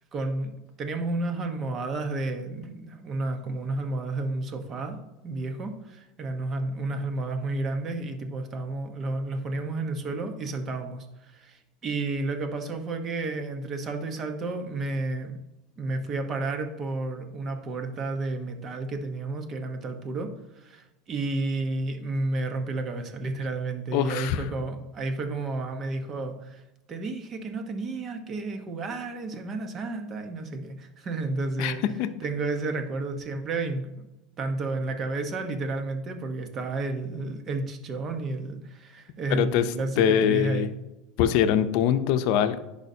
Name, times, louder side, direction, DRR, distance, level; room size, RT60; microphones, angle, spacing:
voice 1, 0.1-0.5 0.8-5.0 5.2-15.4 15.8-20.3 20.6-26.6 26.9-31.8 32.2-33.9 34.4-40.7, right 2 dB, 35° right, 6 dB, 1.0 m, -31 dB
voice 2, 23.9-24.4 31.6-32.1 39.3-39.7 40.0-40.7 41.2-42.6, left 9 dB, 65° left, 11 dB, 0.6 m, -23 dB
10.5 x 4.9 x 2.8 m, 0.97 s
supercardioid pair, 120°, 0 cm